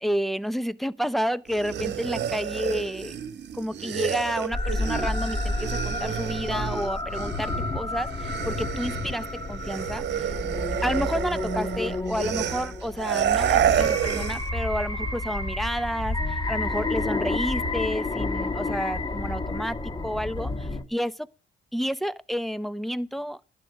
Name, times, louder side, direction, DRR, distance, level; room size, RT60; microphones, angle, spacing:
voice 1, 0.0-3.2 3.5-10.0 10.8-21.3 21.7-23.4, equal, ahead, 0.6 m, -30 dB
sound 1, 1.5-7.7 8.0-14.5, right 9 dB, 60° right, 1.1 m, -29 dB
sound 2, 4.5-20.8, left 2 dB, 20° left, 1.5 m, -30 dB
11.5 x 7.9 x 7.6 m
cardioid pair, 90°, 20 cm